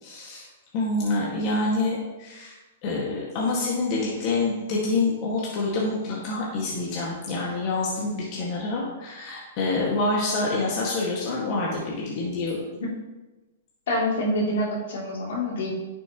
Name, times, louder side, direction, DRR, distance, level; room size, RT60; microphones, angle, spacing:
voice 1, 0.0-0.4 0.7-2.5 2.8-12.6, left 2 dB, 40° left, -4 dB, 1.8 m, -27 dB
voice 2, 13.9-15.7, left 1 dB, 70° left, -4 dB, 2.9 m, -26 dB
10.5 x 6.3 x 3.0 m, 1.1 s
hypercardioid pair, 140°, 0 cm